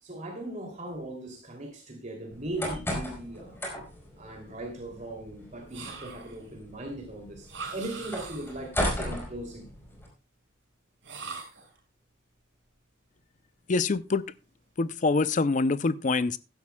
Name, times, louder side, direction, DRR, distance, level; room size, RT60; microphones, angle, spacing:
voice 1, 0.0-3.6 4.2-9.7, right 1 dB, 40° right, 2.8 m, -39 dB
sound 1, 2.3-10.1, equal, 10° left, 4.3 m, -36 dB
sound 2, 5.7-6.5 7.5-8.7 11.0-11.8, right 4 dB, 80° right, 5.0 m, -41 dB
voice 2, 13.7-14.2 14.8-16.4, left 3 dB, 40° left, 0.5 m, -25 dB
15.5 x 11.5 x 2.2 m
head